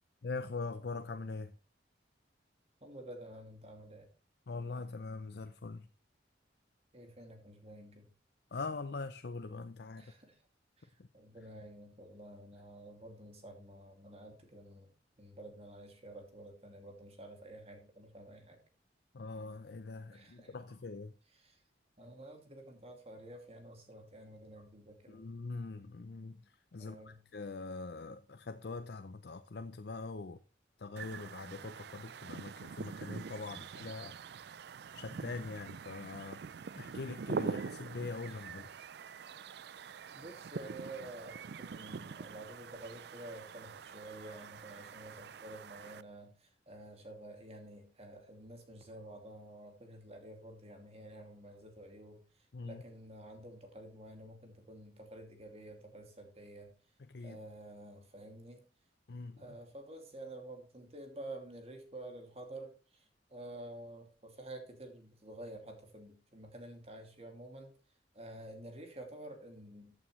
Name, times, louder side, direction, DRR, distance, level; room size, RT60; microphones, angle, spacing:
voice 1, 0.2-1.5 4.5-5.9 8.5-10.1 19.1-21.1 25.1-26.4 26.7-30.4 30.8-34.1 34.9-36.4 36.7-38.7 52.5-52.8 57.1-57.4 59.1-59.6, left 3 dB, 60° left, 0.6 m, -42 dB
voice 2, 2.8-4.1 6.9-8.1 10.0-10.3 10.8-14.9 15.2-18.6 20.1-20.7 21.3-21.6 22.0-25.3 26.8-27.2 38.2-38.5 39.7-52.2 52.6-56.7 57.2-58.6 59.4-63.0 63.3-67.7 68.1-69.9, right 1 dB, 35° right, 2.5 m, -50 dB
sound 1, 31.0-46.0, right 5 dB, 60° right, 0.4 m, -44 dB
14.5 x 8.6 x 3.2 m
head